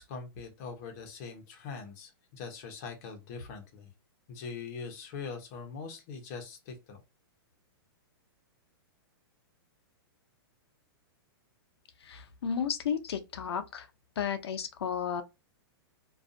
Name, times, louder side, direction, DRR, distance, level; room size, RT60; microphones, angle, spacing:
voice 1, 0.0-3.9 4.3-7.0, left 5 dB, 40° left, 0.8 m, -42 dB
voice 2, 12.0-13.9 14.2-15.2, left 7 dB, 90° left, 0.5 m, -33 dB
2.5 x 2.3 x 2.5 m
hypercardioid pair, 155°, 13 cm